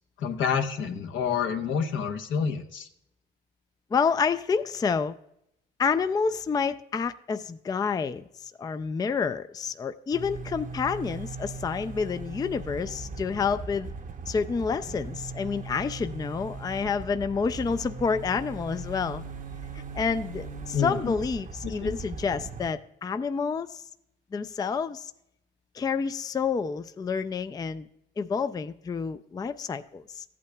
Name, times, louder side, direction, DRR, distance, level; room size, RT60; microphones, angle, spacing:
voice 1, 0.2-2.9 20.7-21.1 21.6-21.9, left 6 dB, 75° left, 5 dB, 1.0 m, -28 dB
voice 2, 3.9-5.2 5.8-13.9 14.3-19.2 19.7-23.8 24.3-25.1 25.7-27.9 28.2-30.2, left 5 dB, 20° left, 11 dB, 0.3 m, -29 dB
sound 1, 10.1-22.7, right 3 dB, 40° right, 0.7 m, -39 dB
14.5 x 8.4 x 2.3 m, 0.77 s
cardioid pair, 90°, 20 cm